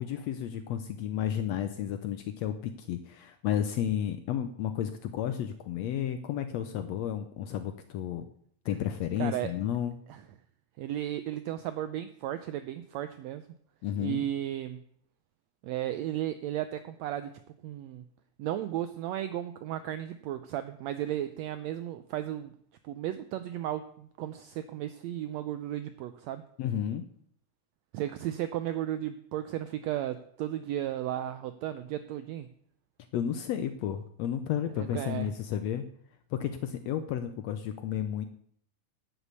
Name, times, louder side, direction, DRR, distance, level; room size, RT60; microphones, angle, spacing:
voice 1, 0.0-8.3 8.6-10.0 13.8-14.3 26.6-27.0 33.1-35.8 36.3-38.3, left 10 dB, 75° left, 9 dB, 1.6 m, -32 dB
voice 2, 9.2-9.5 10.1-10.2 10.8-13.4 14.0-14.8 15.6-18.0 18.4-22.5 22.8-26.4 27.9-32.5 34.8-35.3, right 12 dB, 90° right, 11 dB, 1.5 m, -34 dB
11.0 x 6.2 x 8.2 m, 0.65 s
omnidirectional pair, 3.7 m